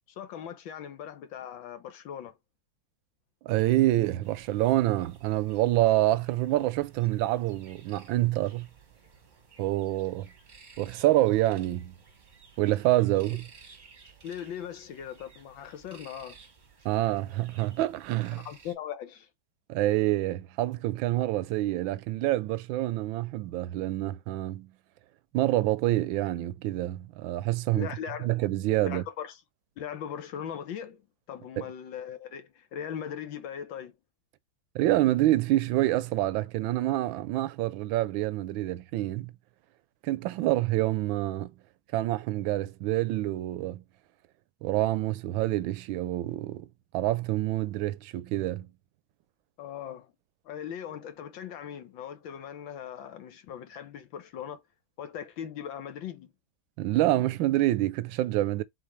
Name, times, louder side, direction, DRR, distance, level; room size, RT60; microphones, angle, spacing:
voice 1, 0.2-2.4 14.2-16.4 18.3-19.3 27.7-28.3 28.8-29.4 29.8-31.0 31.3-33.9 49.6-50.1 50.4-54.6 55.0-56.3, left 9 dB, 80° left, 1.7 m, -39 dB
voice 2, 3.4-8.7 9.6-10.3 10.8-11.9 12.6-13.5 16.8-18.5 19.7-24.7 25.3-27.9 28.2-29.0 31.6-31.7 34.7-39.3 40.0-41.5 41.9-43.8 44.6-46.7 46.9-48.7 56.8-58.6, right 16 dB, 85° right, 1.3 m, -27 dB
sound 1, 4.2-18.8, right 5 dB, 30° right, 0.9 m, -55 dB
4.2 x 4.0 x 3.1 m
omnidirectional pair, 2.1 m